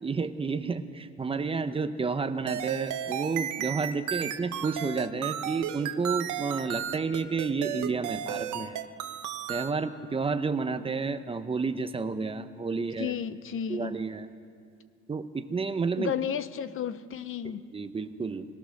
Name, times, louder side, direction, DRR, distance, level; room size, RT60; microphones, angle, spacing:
voice 1, 0.0-8.8 9.5-13.1 13.7-14.3 15.1-16.1 17.4-18.5, right 4 dB, 20° right, 10 dB, 0.7 m, -31 dB
sound 1, 2.5-9.7, right 10 dB, 90° right, 1.1 m, -33 dB
voice 2, 12.7-14.0 16.0-17.7, left 8 dB, 45° left, 14 dB, 0.6 m, -33 dB
22.0 x 18.5 x 6.4 m, 2.2 s
cardioid pair, 155°, 29 cm